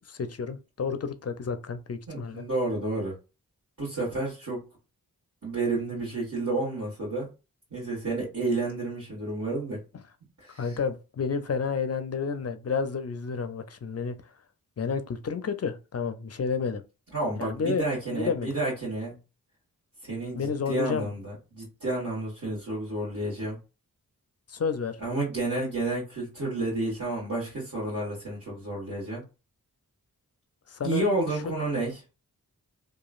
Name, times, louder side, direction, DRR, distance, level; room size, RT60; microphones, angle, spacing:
voice 1, 0.0-2.4 10.6-14.2 14.8-16.8 17.4-17.8 18.1-18.5 20.3-21.1 24.5-25.0 30.7-31.0, left 5 dB, 45° left, 0.5 m, -30 dB
voice 2, 2.1-3.2 3.8-4.7 5.4-7.3 7.7-9.8 10.4-10.7 17.1-19.1 20.0-23.6 25.0-29.2 30.8-32.0, right 2 dB, 55° right, 1.5 m, -30 dB
2.9 x 2.3 x 2.4 m
cardioid pair, 45°, 37 cm